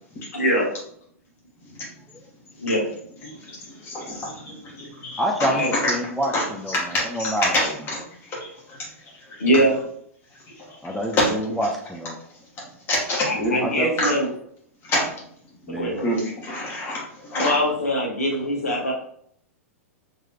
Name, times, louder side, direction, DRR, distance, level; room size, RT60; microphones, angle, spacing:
voice 1, 0.3-0.7 2.6-2.9 5.5-5.7 9.4-9.8 13.2-14.3 15.7-16.1 17.3-18.9, equal, 80° left, -1 dB, 1.3 m, -22 dB
voice 2, 3.9-4.3 4.8-5.5 5.8-5.9 6.3-8.0 11.2-11.6 12.9-13.6 14.0-14.1 14.9-15.1 16.0-17.0 17.3-17.6, left 1 dB, 30° left, -4 dB, 1.3 m, -25 dB
voice 3, 5.2-7.7 10.8-12.2 13.6-13.9 15.7-16.0, equal, ahead, 1 dB, 0.4 m, -27 dB
3.8 x 3.0 x 2.9 m, 0.66 s
figure-of-eight pair, 105°, 8 cm